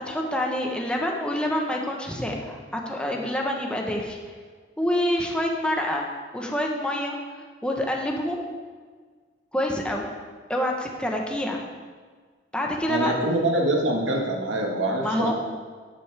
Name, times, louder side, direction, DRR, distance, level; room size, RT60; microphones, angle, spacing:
voice 1, 0.0-4.2 4.8-6.1 6.3-7.2 7.6-8.4 9.5-10.1 10.5-11.6 12.5-13.1 15.0-15.3, left 1 dB, 5° left, 0 dB, 1.1 m, -27 dB
voice 2, 12.9-15.3, right 1 dB, 85° right, 0 dB, 1.7 m, -24 dB
11.5 x 8.8 x 3.5 m, 1.5 s
head